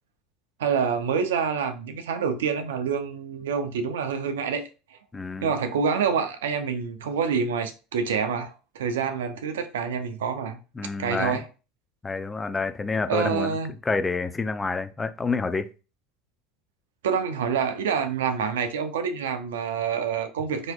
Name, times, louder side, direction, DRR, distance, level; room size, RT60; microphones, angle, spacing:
voice 1, 0.6-4.6 4.9-5.0 5.4-10.6 11.0-11.5 13.1-13.7 17.0-20.7, right 6 dB, 85° right, 0.5 m, -27 dB
voice 2, 5.1-5.5 10.8-11.4 12.0-13.6 13.8-15.7, left 4 dB, 20° left, 0.4 m, -28 dB
3.9 x 2.8 x 2.3 m
hypercardioid pair, 85°, 0 cm